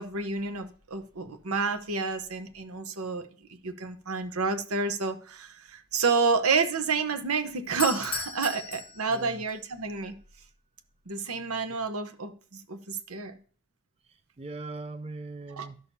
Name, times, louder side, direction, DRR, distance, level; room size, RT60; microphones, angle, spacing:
voice 1, 0.0-10.1 11.1-13.4 15.5-15.7, right 4 dB, 80° right, 0.9 m, -29 dB
Doorbell, 7.6-9.6, left 6 dB, 25° left, 0.8 m, -36 dB
voice 2, 9.1-9.4 14.0-15.8, right 3 dB, 25° right, 0.4 m, -40 dB
12.0 x 6.3 x 2.7 m
head